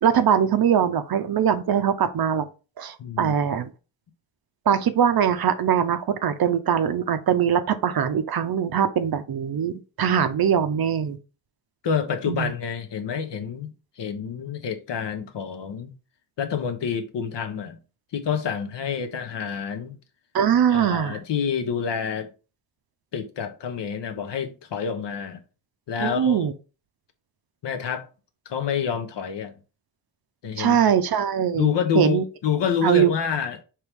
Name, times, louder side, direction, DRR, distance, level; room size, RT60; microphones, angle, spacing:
voice 1, 0.0-2.5 2.8-3.7 4.7-11.2 12.3-12.5 20.3-21.2 26.0-26.5 30.6-31.7 31.9-32.2 32.8-33.1, right 8 dB, 55° right, 0.5 m, -22 dB
voice 2, 3.0-3.3 11.8-15.9 16.4-17.8 18.1-20.0 20.7-22.3 23.1-25.4 25.9-26.4 27.6-28.1 28.5-29.5 30.4-30.9 31.6-33.6, left 7 dB, 65° left, 0.8 m, -28 dB
4.6 x 3.0 x 3.4 m
cardioid pair, 100°, 46 cm